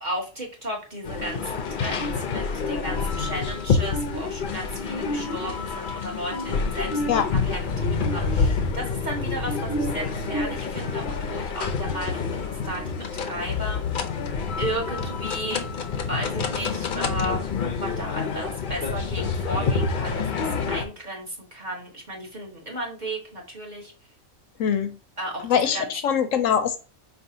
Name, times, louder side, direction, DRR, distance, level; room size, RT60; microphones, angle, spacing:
voice 1, 0.0-14.0 14.6-15.6 16.1-17.5 17.8-23.9 25.2-25.9, right 1 dB, 35° right, 1.4 m, -34 dB
sound 1, 1.0-20.9, left 4 dB, 50° left, 0.7 m, -27 dB
voice 2, 24.6-24.9 25.4-26.8, left 8 dB, 70° left, 0.9 m, -22 dB
4.7 x 3.4 x 2.7 m
omnidirectional pair, 1.5 m